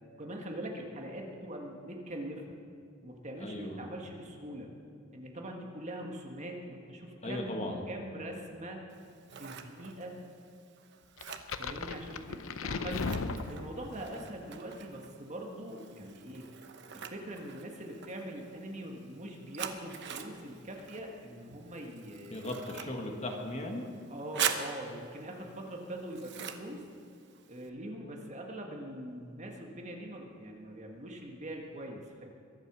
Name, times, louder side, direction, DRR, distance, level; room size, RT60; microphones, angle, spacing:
voice 1, 0.2-2.4 3.0-4.7 5.1-7.6 7.9-8.9 9.4-10.2 11.5-13.1 13.5-16.5 16.9-22.6 24.1-26.8 27.5-32.3, right 1 dB, 35° right, 1 dB, 1.7 m, -42 dB
voice 2, 3.4-3.8 7.2-7.8 22.3-23.9, left 1 dB, 35° left, 2 dB, 1.6 m, -37 dB
Scissors, 8.9-27.7, right 8 dB, 60° right, 1.0 m, -43 dB
sound 1, 11.2-14.1, left 4 dB, 80° left, 0.7 m, -36 dB
22.5 x 8.0 x 6.2 m, 2.4 s
head